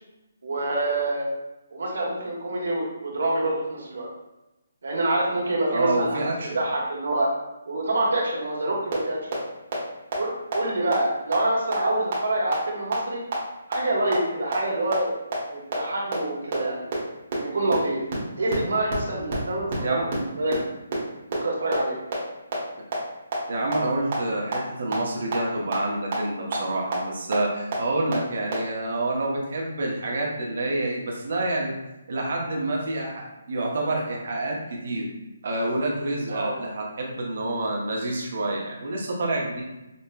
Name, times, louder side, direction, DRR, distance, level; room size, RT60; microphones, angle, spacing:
voice 1, 0.4-1.3 1.7-4.1 4.8-6.2 6.5-7.3 7.6-9.2 10.2-13.2 13.7-15.1 15.5-16.8 17.3-18.0 18.4-20.5 21.3-22.0 36.3-36.5, right 2 dB, 80° right, -3 dB, 1.1 m, -26 dB
voice 2, 5.7-6.6 19.8-20.0 23.5-31.7 32.1-35.1 35.4-39.6, right 2 dB, 55° right, -1 dB, 0.8 m, -28 dB
sound 1, 8.9-9.0 9.3-9.4 9.7-9.8 10.1-10.2 10.5-10.6 10.9-11.0 11.3-11.4 11.7-11.8 12.1-12.2 12.5-12.6 12.9-13.0 13.3-13.4 13.7-13.8 14.1-14.2 14.5-14.6 14.9-15.0 15.3-15.4 15.7-15.8 16.1-16.2 16.5-16.6 16.9-17.0 17.3-17.4 17.7-17.8 18.1-18.2 18.5-18.6 18.9-19.0 19.3-19.4 19.7-19.8 20.1-20.2 20.5-20.6 20.9-21.0 21.3-21.4 21.7-21.8 22.1-22.2 22.5-22.6 22.9-23.0 23.3-23.4 23.7-23.8 24.1-24.2 24.5-24.6 24.9-25.0 25.3-25.4 25.7-25.8 26.1-26.2 26.5-26.6 26.9-27.0 27.3-27.4 27.7-27.8 28.1-28.2 28.5-28.6, right 6 dB, 35° right, 1.0 m, -27 dB
5.3 x 2.1 x 2.2 m, 0.97 s
hypercardioid pair, 170°, 0 cm